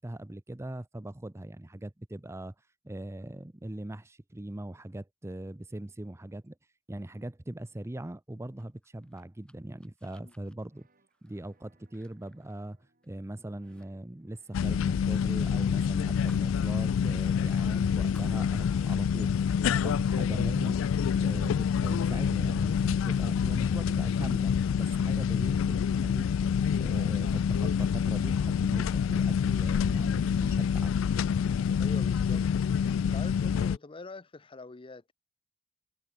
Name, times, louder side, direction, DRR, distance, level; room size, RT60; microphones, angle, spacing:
voice 1, 0.0-2.5 2.8-6.6 6.9-10.9 11.2-19.3 19.7-20.8 21.2-26.5 26.8-30.9, right 1 dB, 15° right, 0.6 m, -40 dB
sound 1, 8.6-13.2 13.5-13.9 14.1-16.6 16.9-17.0 17.5-19.0, left 1 dB, 5° left, 2.3 m, -62 dB
sound 2, 10.6-22.2, right 2 dB, 45° right, 6.2 m, -72 dB
sound 3, 14.5-33.8, left 7 dB, 80° left, 0.3 m, -27 dB
voice 2, 31.8-32.5 33.1-35.1, left 3 dB, 25° left, 0.6 m, -44 dB
head